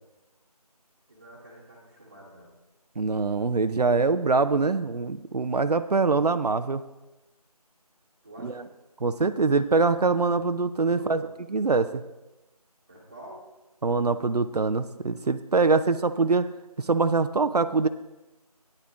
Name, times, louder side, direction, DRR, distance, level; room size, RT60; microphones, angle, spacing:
voice 1, 1.1-2.5 8.2-8.6 11.0-11.3 12.9-13.4, right 1 dB, 10° right, -8 dB, 1.5 m, -46 dB
voice 2, 3.0-6.8 8.4-8.5 9.0-11.2 11.5-12.0 13.8-16.5 16.8-17.9, right 4 dB, 80° right, 10 dB, 0.6 m, -24 dB
14.5 x 10.0 x 2.4 m, 1.0 s
figure-of-eight pair, 175°, 20 cm